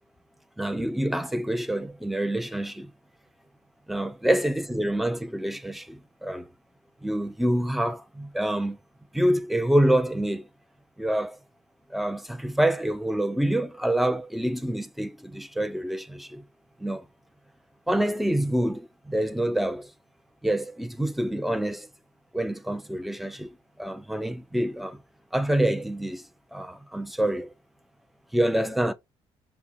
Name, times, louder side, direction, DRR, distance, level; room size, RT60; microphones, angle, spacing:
voice 1, 0.6-2.9 3.9-6.5 7.0-8.8 9.1-10.5 11.0-11.4 11.9-16.4 16.8-17.0 17.9-19.9 20.4-21.9 22.3-25.0 25.3-26.2 26.5-27.5 28.3-28.9, right 1 dB, ahead, 0.4 m, -26 dB
5.5 x 2.0 x 2.5 m
supercardioid pair, 75°, 11 cm